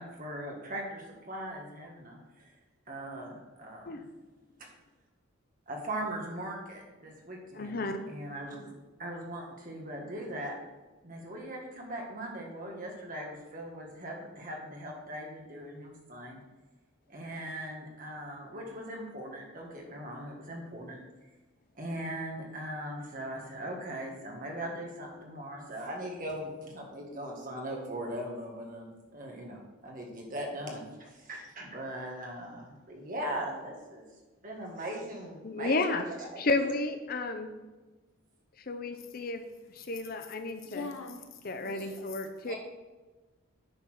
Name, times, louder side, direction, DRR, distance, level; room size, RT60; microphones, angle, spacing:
voice 1, 0.0-2.5 2.9-4.0 5.7-8.7 9.0-10.5 11.0-16.4 17.1-21.0 21.7-34.1 34.4-35.9 36.2-36.5 41.6-41.9 42.4-42.5, right 1 dB, 40° right, 0 dB, 1.8 m, -40 dB
voice 2, 7.5-8.0 35.4-36.0 36.4-37.5 38.7-39.4 39.7-40.9 41.4-42.5, left 3 dB, 45° left, 7 dB, 0.6 m, -32 dB
voice 3, 40.6-41.4 41.9-42.2, left 4 dB, 75° left, 6 dB, 1.0 m, -42 dB
9.7 x 4.3 x 6.3 m, 1.2 s
head